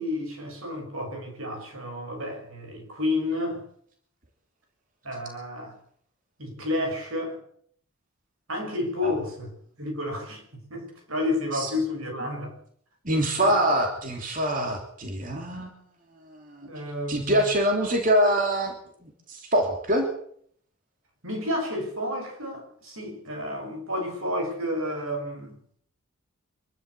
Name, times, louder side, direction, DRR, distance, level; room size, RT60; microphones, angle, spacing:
voice 1, 0.0-3.6 5.0-5.8 6.4-7.4 8.5-9.5 9.8-10.4 10.7-12.6 13.4-13.5 16.7-17.4 21.2-25.5, left 1 dB, 75° right, 6.3 m, -31 dB
voice 2, 13.0-15.7 16.3-16.7 17.1-18.7 19.0-20.1, right 1 dB, 40° right, 3.2 m, -24 dB
25.0 x 12.5 x 8.4 m
head